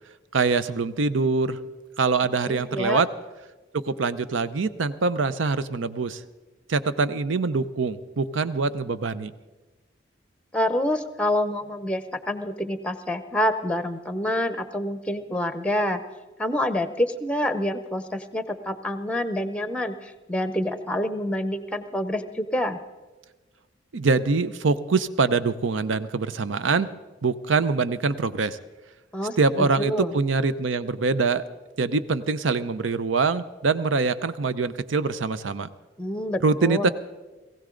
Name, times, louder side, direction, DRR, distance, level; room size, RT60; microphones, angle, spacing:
voice 1, 0.3-1.6 2.0-3.1 3.7-6.2 6.7-9.3 23.9-26.9 27.2-28.6 29.4-31.4 31.8-35.7 36.4-36.9, right 4 dB, 80° right, 14 dB, 0.6 m, -24 dB
voice 2, 2.4-3.0 10.5-16.0 16.4-22.8 29.1-30.1 36.0-36.9, left 1 dB, 5° left, 11 dB, 0.7 m, -27 dB
19.0 x 16.0 x 3.8 m, 1.2 s
head